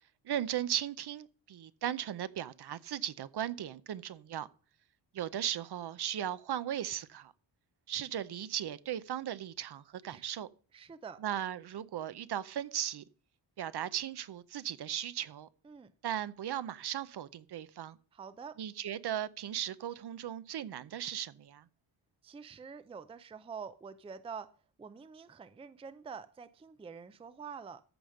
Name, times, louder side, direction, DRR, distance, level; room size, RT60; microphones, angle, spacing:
voice 1, 0.2-4.5 5.1-7.3 7.9-10.5 11.2-13.0 13.6-15.5 16.0-18.0 18.6-21.6, right 10 dB, 55° right, 0.6 m, -37 dB
voice 2, 10.7-11.2 15.6-15.9 18.1-18.6 22.2-24.5 24.8-27.8, right 6 dB, 15° right, 0.4 m, -46 dB
14.0 x 5.0 x 6.4 m
wide cardioid pair, 175°, 47 cm